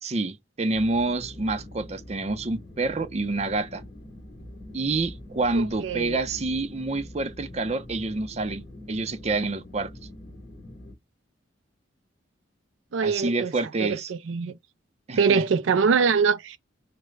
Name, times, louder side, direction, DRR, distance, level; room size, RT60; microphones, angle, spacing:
voice 1, 0.0-3.8 4.7-8.6 8.9-9.9 13.0-14.1 15.1-15.4, right 3 dB, 35° right, 0.6 m, -28 dB
sound 1, 0.7-10.9, left 1 dB, 60° left, 2.5 m, -44 dB
voice 2, 5.5-6.2 12.9-13.5 13.8-14.6 15.2-16.6, right 5 dB, 90° right, 0.4 m, -23 dB
4.9 x 2.2 x 3.2 m
head